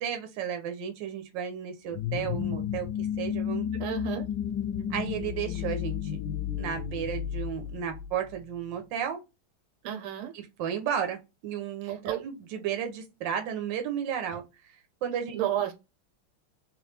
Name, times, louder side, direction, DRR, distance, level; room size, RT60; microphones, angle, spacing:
voice 1, 0.0-3.7 4.9-6.2 6.5-9.2 10.3-14.4 15.0-15.4, right 8 dB, 65° right, 1.4 m, -33 dB
sound 1, 1.9-8.4, left 9 dB, 75° left, 1.0 m, -32 dB
voice 2, 3.8-4.2 9.8-10.3 12.0-12.2 15.3-15.7, right 11 dB, 90° right, 1.6 m, -31 dB
3.4 x 3.2 x 3.2 m
omnidirectional pair, 2.3 m